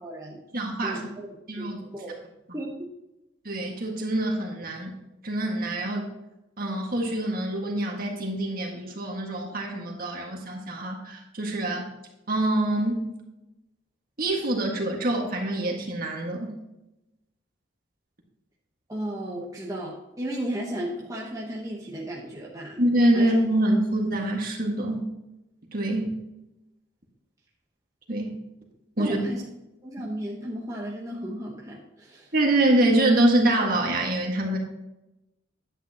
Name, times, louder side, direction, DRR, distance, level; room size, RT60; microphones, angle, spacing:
voice 1, 0.0-0.4 0.8-1.3 1.6-2.1 2.5-2.7 18.9-22.8 23.1-23.3 29.0-29.4 29.8-32.3, right 1 dB, 15° right, -3 dB, 1.0 m, -34 dB
voice 2, 0.5-1.1 1.5-1.8 3.4-4.9 5.2-6.1 6.6-11.9 12.3-13.1 14.2-16.6 22.8-25.1 25.7-26.2 28.1-28.4 29.0-29.2 32.3-34.6, right 1 dB, 45° right, 0 dB, 1.7 m, -25 dB
10.5 x 9.0 x 2.9 m, 0.93 s
head